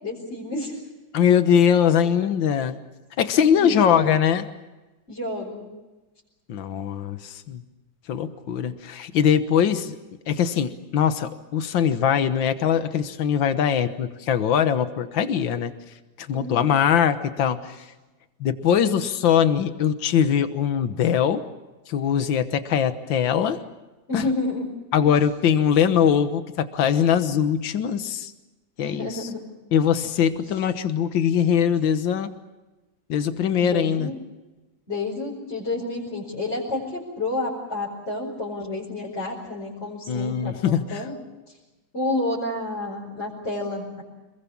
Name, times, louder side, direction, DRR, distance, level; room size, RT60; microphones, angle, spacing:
voice 1, 0.0-0.8 2.0-2.3 3.4-3.9 5.1-5.7 16.3-16.7 24.1-24.7 28.8-29.4 33.6-34.2 34.9-41.1 41.9-44.0, left 2 dB, 30° left, -5 dB, 5.5 m, -30 dB
voice 2, 1.1-2.8 3.2-4.5 6.5-7.6 8.1-10.0 10.3-15.7 16.2-17.8 18.4-21.4 21.9-23.6 24.1-24.3 24.9-28.3 28.8-29.3 29.7-32.3 33.1-34.1 40.1-41.0, left 8 dB, 75° left, 10 dB, 2.0 m, -21 dB
27.0 x 21.5 x 7.2 m, 1.1 s
omnidirectional pair, 2.1 m